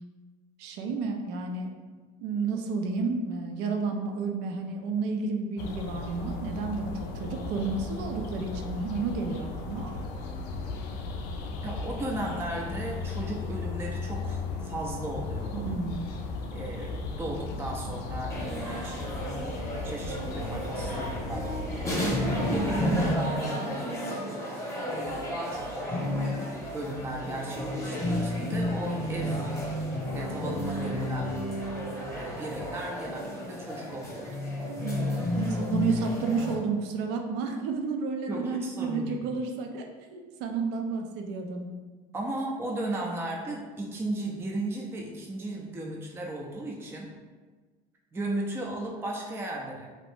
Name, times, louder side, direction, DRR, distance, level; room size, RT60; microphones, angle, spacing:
voice 1, 0.6-1.7 2.2-9.9 15.5-16.1 22.0-22.6 34.8-35.1 35.4-41.7, right 4 dB, 70° right, 3 dB, 0.5 m, -31 dB
sound 1, 5.6-23.1, left 3 dB, 65° left, 0.4 m, -36 dB
voice 2, 11.6-15.7 16.5-19.0 19.8-21.5 22.4-23.8 24.8-26.0 26.7-29.5 30.1-31.3 32.2-34.3 38.3-39.2 42.1-47.1 48.1-49.9, right 1 dB, 15° right, -1 dB, 0.4 m, -35 dB
sound 2, 18.3-36.5, left 1 dB, 15° left, 0.9 m, -32 dB
sound 3, 25.0-32.9, right 4 dB, 50° right, 0.9 m, -49 dB
2.6 x 2.4 x 3.4 m, 1.4 s
supercardioid pair, 100°, 18 cm